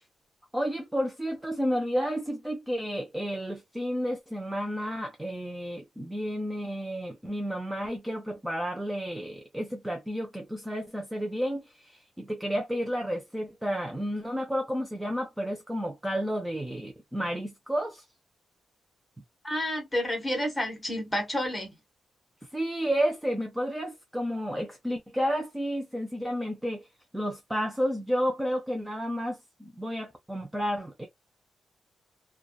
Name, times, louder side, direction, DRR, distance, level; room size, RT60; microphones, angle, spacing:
voice 1, 0.5-18.0 22.5-26.9 27.1-31.1, equal, 5° right, 0.4 m, -31 dB
voice 2, 19.4-21.7, left 1 dB, 10° left, 1.1 m, -30 dB
2.6 x 2.2 x 2.3 m
wide cardioid pair, 165°, 0 cm